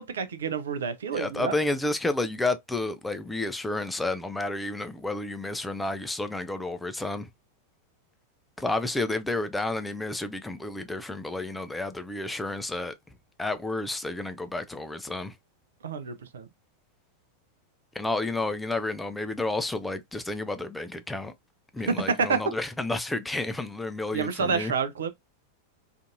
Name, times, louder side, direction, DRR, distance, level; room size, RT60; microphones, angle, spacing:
voice 1, 0.0-1.6 15.8-16.4 21.9-22.4 24.1-25.1, right 5 dB, 65° right, 0.4 m, -28 dB
voice 2, 1.1-7.3 8.6-12.9 13.4-15.3 18.0-21.3 21.7-24.7, left 2 dB, 5° left, 0.3 m, -31 dB
2.5 x 2.5 x 2.5 m
figure-of-eight pair, 90°, 0 cm